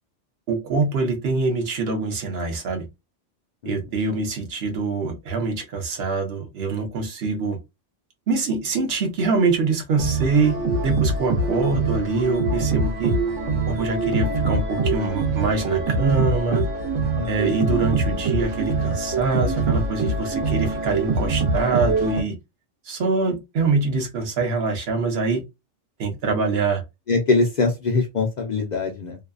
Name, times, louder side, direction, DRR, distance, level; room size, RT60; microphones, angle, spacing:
voice 1, 0.5-2.9 3.7-7.6 8.3-13.1 13.7-16.6 17.3-22.4 22.9-25.4 26.0-26.8, right 4 dB, 60° right, 0.9 m, -24 dB
sound 1, 10.0-22.2, right 3 dB, 90° right, 1.1 m, -24 dB
voice 2, 27.1-29.2, left 3 dB, 70° left, 0.4 m, -22 dB
2.7 x 2.2 x 2.4 m
omnidirectional pair, 1.3 m